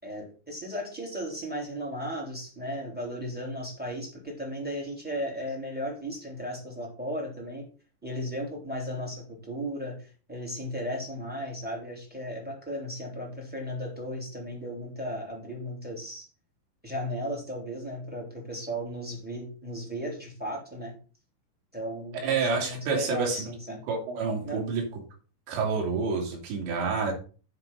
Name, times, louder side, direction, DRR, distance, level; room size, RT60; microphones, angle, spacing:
voice 1, 0.0-7.7 8.0-16.3 16.8-21.0 21.7-23.9 24.4-24.6, equal, ahead, -2 dB, 2.7 m, -35 dB
voice 2, 22.2-23.5 23.9-24.9 25.5-27.1, right 4 dB, 75° right, 0 dB, 4.9 m, -28 dB
9.7 x 5.3 x 5.6 m, 0.36 s
omnidirectional pair, 5.2 m